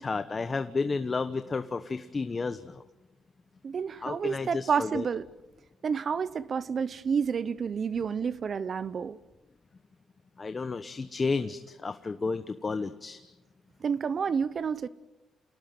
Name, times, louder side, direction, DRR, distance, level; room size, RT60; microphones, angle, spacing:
voice 1, 0.0-2.8 4.0-5.0 10.4-13.2, left 4 dB, 30° left, 1.1 m, -32 dB
voice 2, 3.6-5.3 5.8-9.2 13.8-14.9, right 6 dB, 50° right, 0.8 m, -29 dB
27.5 x 18.5 x 9.3 m
cardioid pair, 90°, 0 cm